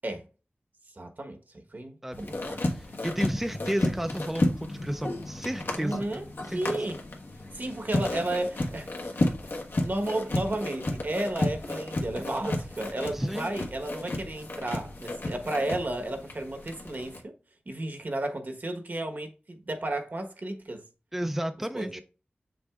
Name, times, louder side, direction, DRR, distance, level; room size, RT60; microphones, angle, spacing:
voice 1, 1.0-2.6 5.8-7.0 7.5-9.2 9.8-17.3 17.7-20.8 21.7-22.0, right 1 dB, 55° right, 1.2 m, -33 dB
voice 2, 2.0-2.3 2.6-6.2 6.5-6.8 13.1-13.5 21.1-22.0, equal, 5° right, 0.4 m, -32 dB
sound 1, 2.1-17.2, left 2 dB, 80° left, 1.2 m, -32 dB
7.3 x 6.0 x 2.4 m
wide cardioid pair, 65°, 4 cm